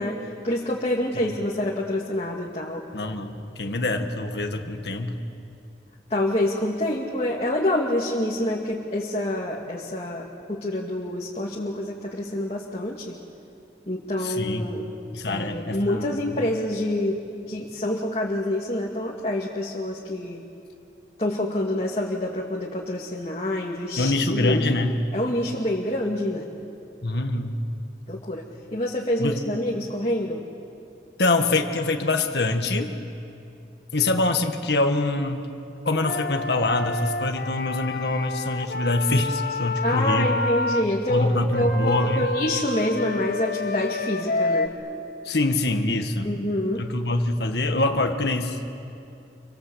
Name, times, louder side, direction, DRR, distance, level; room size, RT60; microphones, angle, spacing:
voice 1, 0.0-2.8 6.1-13.1 13.9-14.9 15.3-17.2 17.5-20.4 21.2-24.6 25.1-26.5 28.1-28.4 28.7-30.4 39.8-44.7 46.2-46.8, left 1 dB, 35° left, -3 dB, 2.3 m, -27 dB
voice 2, 2.9-5.2 14.2-14.7 15.1-16.2 24.0-25.0 27.0-27.6 29.2-29.4 31.2-32.9 33.9-35.5 35.9-40.4 41.1-42.3 45.3-46.3 46.8-48.6, left 2 dB, 75° left, 5 dB, 1.7 m, -24 dB
Wind instrument woodwind instrument, 36.0-40.8 41.5-44.7, left 2 dB, 55° left, 1.3 m, -29 dB
28.5 x 25.0 x 8.2 m, 2.7 s
head